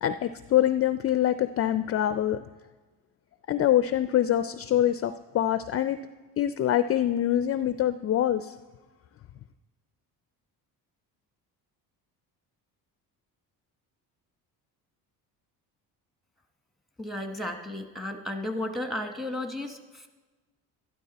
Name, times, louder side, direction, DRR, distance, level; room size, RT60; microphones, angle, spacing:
voice 1, 0.0-2.4 3.5-6.0 6.4-8.6, left 11 dB, 40° left, 12 dB, 0.4 m, -25 dB
voice 2, 17.0-20.1, left 1 dB, ahead, 6 dB, 1.1 m, -34 dB
12.0 x 12.0 x 4.0 m, 1.3 s
cardioid pair, 105°, 39 cm